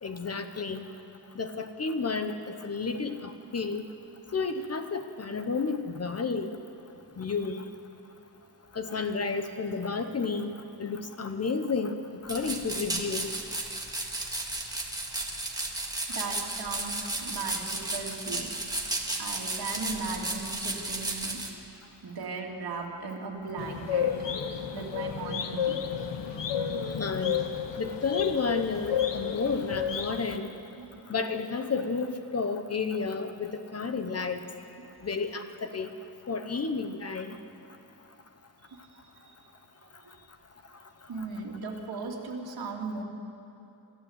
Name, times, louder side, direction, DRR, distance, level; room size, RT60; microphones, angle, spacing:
voice 1, 0.0-0.9 1.3-3.9 4.3-6.5 7.2-7.6 8.7-10.5 10.8-13.3 26.9-27.4 27.8-30.5 31.1-34.4 35.0-35.9 36.3-37.4, left 4 dB, 35° left, 8 dB, 0.9 m, -31 dB
sound 1, 12.3-21.5, right 2 dB, 10° right, 1.8 m, -34 dB
voice 2, 16.1-18.5 19.2-21.4 22.0-25.8 26.2-26.5 30.8-30.9 38.7-39.4 39.8-39.9 41.1-43.0, right 4 dB, 60° right, 0 dB, 2.8 m, -37 dB
sound 2, 23.6-30.4, left 8 dB, 80° left, 1.3 m, -31 dB
27.0 x 14.5 x 8.1 m, 2.9 s
wide cardioid pair, 175°, 43 cm